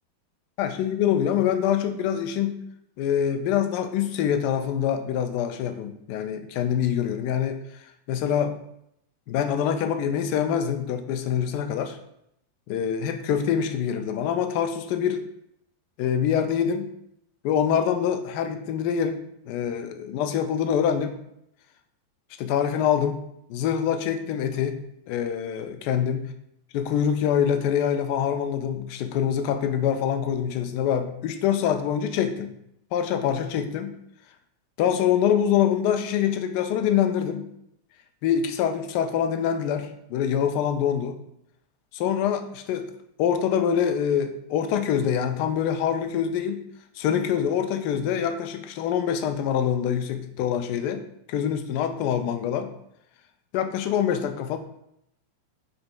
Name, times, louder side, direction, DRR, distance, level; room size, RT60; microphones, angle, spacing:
voice 1, 0.6-2.6 3.0-7.6 8.1-8.6 9.3-12.0 12.7-15.2 16.0-16.9 17.4-21.2 22.4-23.2 23.5-24.8 25.1-26.3 26.7-32.5 32.9-34.0 34.8-37.5 38.2-41.2 41.9-42.9 43.2-46.6 47.0-51.0 51.3-52.7 53.5-54.6, left 8 dB, 45° left, 8 dB, 0.4 m, -25 dB
4.9 x 2.8 x 2.3 m, 0.76 s
figure-of-eight pair, 90°, 0 cm